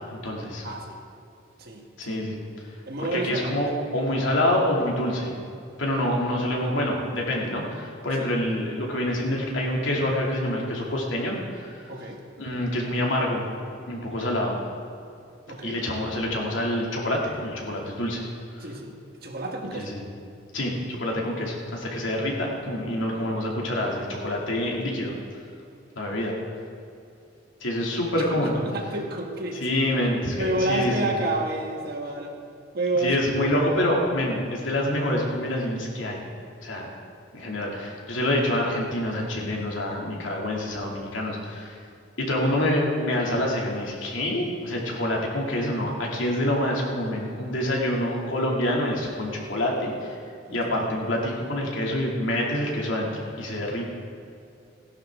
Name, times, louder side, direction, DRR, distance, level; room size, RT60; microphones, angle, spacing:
voice 1, 0.1-0.7 2.0-2.4 3.0-5.3 5.8-11.9 12.4-13.5 13.9-14.6 15.6-18.2 18.5-18.7 19.7-20.0 20.5-25.1 26.0-26.3 27.6-28.6 29.6-31.1 33.0-36.2 36.6-36.9 37.3-41.8 42.2-50.2 50.5-53.1 53.4-53.9, left 1 dB, 85° left, -2 dB, 2.6 m, -26 dB
voice 2, 0.6-1.0 1.6-2.2 2.8-3.5 8.2-8.3 11.9-12.2 15.5-15.8 18.6-19.9 28.4-29.6 30.4-32.4 32.7-33.2 50.5-50.7, right 2 dB, 55° right, 1 dB, 1.5 m, -29 dB
16.0 x 11.5 x 3.7 m, 2.5 s
head